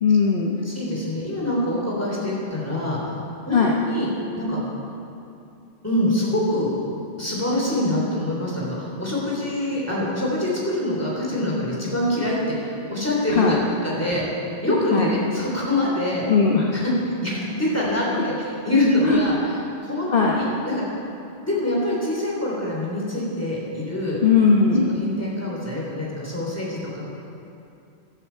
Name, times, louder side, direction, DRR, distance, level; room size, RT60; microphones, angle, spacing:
voice 1, 0.0-0.6 3.5-3.7 13.4-13.6 14.9-15.1 16.3-16.6 19.1-19.2 20.1-20.4 24.2-24.9, left 5 dB, 50° left, -2 dB, 1.2 m, -18 dB
voice 2, 0.6-3.2 3.4-4.1 4.4-4.6 5.8-6.7 7.2-13.6 13.8-14.2 14.6-16.3 16.7-16.9 17.2-21.0 21.4-24.2 24.9-27.0, left 1 dB, 10° left, -5 dB, 3.2 m, -25 dB
15.0 x 11.5 x 4.5 m, 2.7 s
omnidirectional pair, 1.2 m